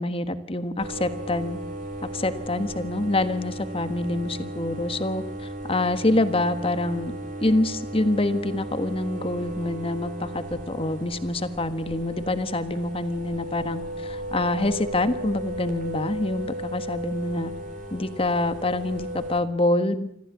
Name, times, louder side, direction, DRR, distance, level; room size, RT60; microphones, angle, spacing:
voice 1, 0.0-1.6 2.0-7.1 7.4-17.5 17.9-20.1, left 2 dB, 35° left, 10 dB, 1.5 m, -26 dB
sound 1, 0.8-19.4, right 1 dB, 50° right, 3.8 m, -36 dB
25.5 x 14.5 x 8.3 m, 0.79 s
head